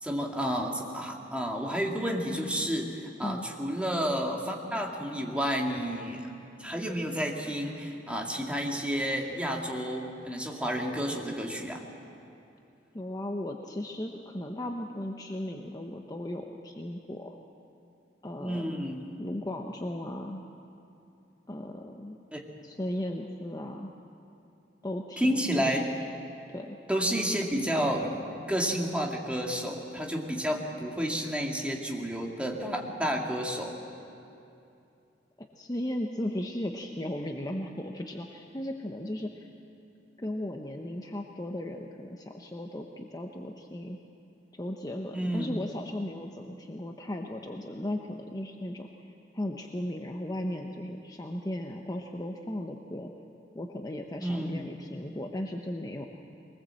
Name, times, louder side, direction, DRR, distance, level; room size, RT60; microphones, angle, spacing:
voice 1, 0.0-6.3 6.6-11.8 18.4-19.1 22.3-22.4 25.2-25.8 26.9-33.8 45.1-45.6 54.2-54.7, equal, 5° right, 0 dB, 2.0 m, -31 dB
voice 2, 12.9-17.4 18.2-18.8 19.2-20.4 21.5-22.2 22.6-23.9 24.8-25.7 26.5-26.8 35.4-39.5 40.2-44.0 44.5-53.1 53.5-56.1, left 1 dB, 20° left, 2 dB, 0.9 m, -36 dB
22.5 x 19.5 x 7.6 m, 2.7 s
head